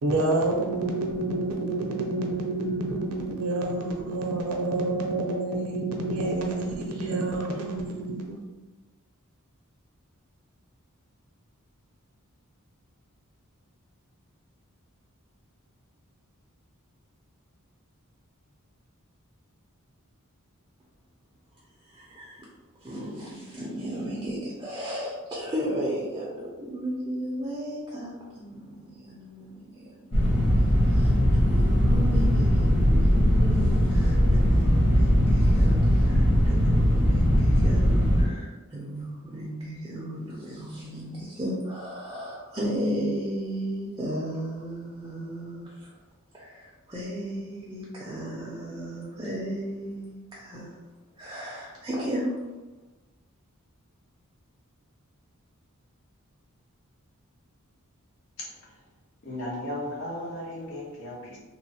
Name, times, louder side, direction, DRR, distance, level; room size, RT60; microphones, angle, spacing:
voice 1, 0.0-8.4, right 2 dB, 80° right, 1 dB, 0.5 m, -28 dB
voice 2, 21.8-22.5 22.8-45.9 46.3-50.8 51.2-52.4, equal, 20° right, -5 dB, 0.4 m, -34 dB
sound 1, 30.1-38.3, equal, 35° left, 1.2 m, -20 dB
voice 3, 59.2-61.4, left 1 dB, 65° left, -5 dB, 0.9 m, -35 dB
2.9 x 2.1 x 2.8 m, 1.1 s
head